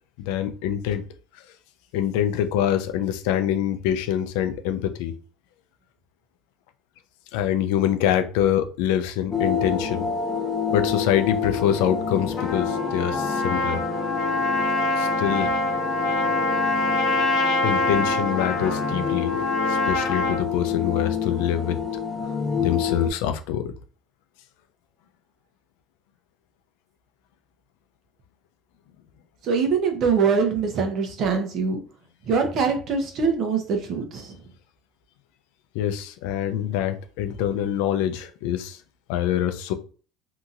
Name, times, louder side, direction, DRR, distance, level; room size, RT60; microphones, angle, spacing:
voice 1, 0.2-1.0 1.3-1.4 1.9-5.1 7.3-10.1 10.7-13.8 15.0-15.5 17.6-19.4 19.7-21.8 22.6-23.7 35.7-38.8 39.1-39.7, left 10 dB, 85° left, 0.4 m, -25 dB
sound 1, 9.3-23.1, left 6 dB, 15° left, 0.7 m, -28 dB
Trumpet, 12.4-20.4, left 2 dB, 60° left, 1.0 m, -25 dB
voice 2, 29.4-31.8 32.3-34.3, right 5 dB, 55° right, 0.8 m, -23 dB
2.8 x 2.7 x 2.5 m
cardioid pair, 115°, 0 cm